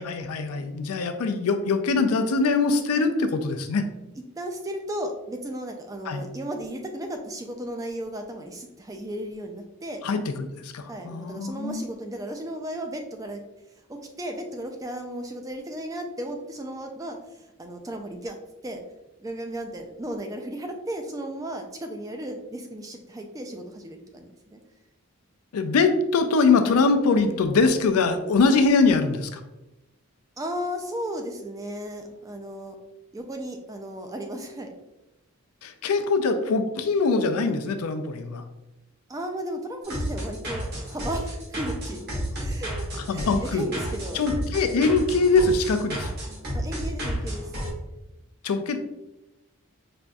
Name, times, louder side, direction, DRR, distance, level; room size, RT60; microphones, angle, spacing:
voice 1, 0.0-3.8 6.1-6.3 10.0-11.8 25.5-29.4 35.6-38.4 43.1-43.7 44.1-46.1 48.4-48.8, left 4 dB, 85° left, 8 dB, 0.4 m, -23 dB
voice 2, 4.4-10.0 10.9-13.4 13.9-18.4 18.6-18.8 19.2-24.6 30.4-32.7 33.1-34.7 39.1-44.2 46.5-47.5, right 1 dB, 15° right, 4 dB, 0.3 m, -35 dB
sound 1, 39.8-47.7, equal, 45° right, 1.1 m, -31 dB
5.0 x 2.5 x 2.2 m, 0.98 s
head